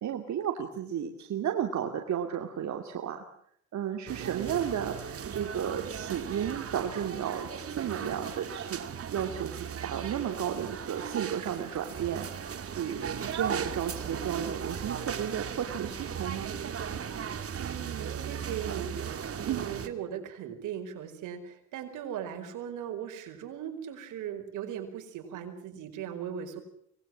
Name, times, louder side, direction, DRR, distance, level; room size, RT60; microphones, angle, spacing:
voice 1, 0.0-3.2 3.7-7.5 7.8-8.8 9.1-16.5 19.5-19.7, right 9 dB, 70° right, 4 dB, 2.7 m, -33 dB
sound 1, 4.1-19.9, right 7 dB, 50° right, 2.5 m, -37 dB
voice 2, 4.2-4.7 17.5-26.6, right 9 dB, 85° right, 6 dB, 4.9 m, -39 dB
25.0 x 19.5 x 7.5 m, 0.69 s
cardioid pair, 90°, 30 cm